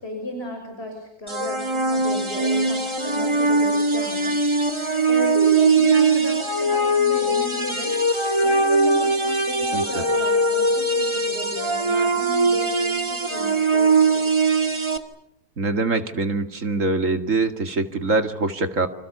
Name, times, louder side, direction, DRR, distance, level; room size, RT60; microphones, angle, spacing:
voice 1, 0.0-7.9 8.4-14.9, equal, 40° left, 2 dB, 6.4 m, -33 dB
sound 1, 1.3-15.0, right 2 dB, 20° right, 2.2 m, -21 dB
voice 2, 15.6-18.9, right 3 dB, 55° right, 7 dB, 2.5 m, -23 dB
29.5 x 26.0 x 6.9 m, 0.69 s
omnidirectional pair, 1.6 m